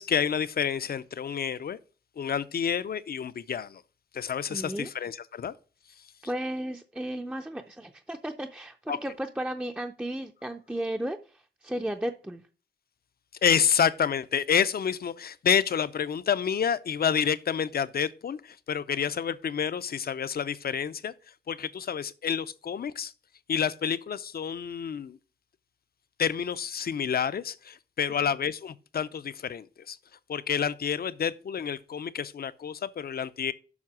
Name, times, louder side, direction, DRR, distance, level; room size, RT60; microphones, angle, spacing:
voice 1, 0.0-1.8 2.2-3.8 4.1-5.5 8.9-9.0 13.4-21.1 21.5-23.1 23.5-25.2 26.2-30.0 30.3-33.5, left 7 dB, 55° left, 0.5 m, -29 dB
voice 2, 4.5-4.9 6.2-12.4, right 1 dB, 5° right, 0.5 m, -34 dB
7.3 x 5.7 x 6.1 m
wide cardioid pair, 160°, 18 cm